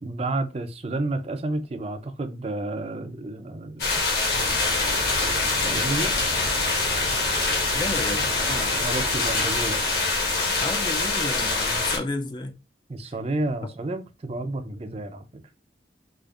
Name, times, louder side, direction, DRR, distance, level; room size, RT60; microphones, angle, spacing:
voice 1, 0.0-4.0 5.2-5.4 5.7-6.2 8.7-9.8 12.9-15.4, right 2 dB, 35° right, 0.4 m, -31 dB
sound 1, 3.8-12.0, left 3 dB, 60° left, 1.5 m, -24 dB
sound 2, 4.3-9.5, right 2 dB, 80° right, 0.6 m, -37 dB
voice 2, 5.6-6.0 7.7-8.8 10.6-12.5 13.0-13.1, left 2 dB, 25° left, 0.3 m, -32 dB
4.9 x 2.4 x 2.4 m
head